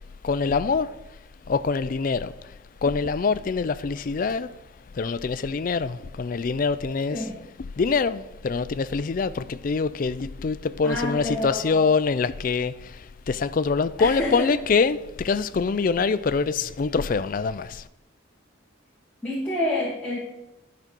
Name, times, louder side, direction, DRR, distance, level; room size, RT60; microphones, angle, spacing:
voice 1, 0.2-1.0 1.5-4.5 4.9-7.2 7.8-17.9, left 4 dB, 40° left, 0.3 m, -25 dB
voice 2, 10.8-11.9 14.0-14.5 19.2-20.2, left 1 dB, 5° left, 1.2 m, -28 dB
9.9 x 5.1 x 6.1 m
head